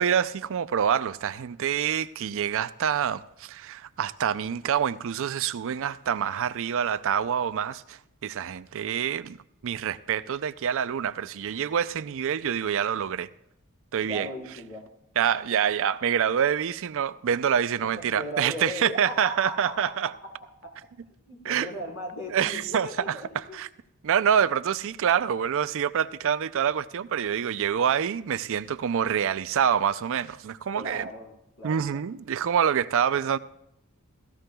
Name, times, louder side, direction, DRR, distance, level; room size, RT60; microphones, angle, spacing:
voice 1, 0.0-9.4 9.6-13.3 13.9-14.3 15.2-20.1 21.4-21.7 22.3-22.9 23.5-23.7 24.0-31.0 31.6-33.4, right 8 dB, 65° right, 0.4 m, -26 dB
voice 2, 14.0-14.9 17.8-20.9 21.3-23.6 30.7-32.0, equal, 70° left, 3.8 m, -38 dB
17.5 x 14.0 x 2.3 m
head